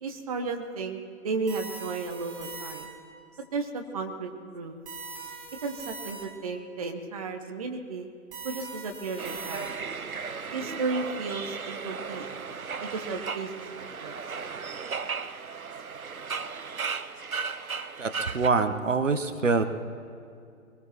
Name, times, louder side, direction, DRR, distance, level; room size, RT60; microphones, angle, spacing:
voice 1, 0.0-2.9 3.5-4.8 5.6-8.1 8.4-9.7 10.5-12.2 12.9-13.5 13.8-14.1, right 4 dB, 25° right, 4 dB, 1.0 m, -34 dB
sound 1, 1.5-3.1 4.8-6.5 8.3-10.0, right 3 dB, 10° right, 3.3 m, -41 dB
sound 2, 9.2-18.5, right 5 dB, 80° right, 0.7 m, -35 dB
voice 2, 18.0-19.6, right 4 dB, 60° right, 8 dB, 1.1 m, -25 dB
22.5 x 19.5 x 3.0 m, 2.5 s
figure-of-eight pair, 140°, 42 cm